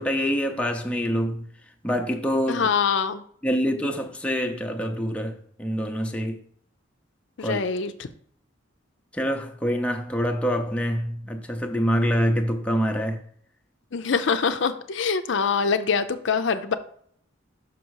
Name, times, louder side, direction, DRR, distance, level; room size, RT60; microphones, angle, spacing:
voice 1, 0.0-1.4 1.8-2.7 3.4-6.4 7.4-7.6 9.1-13.2, equal, 5° left, 0.6 m, -25 dB
voice 2, 2.5-3.2 7.4-7.9 13.9-16.8, left 5 dB, 65° left, 0.5 m, -24 dB
5.9 x 5.3 x 4.7 m
head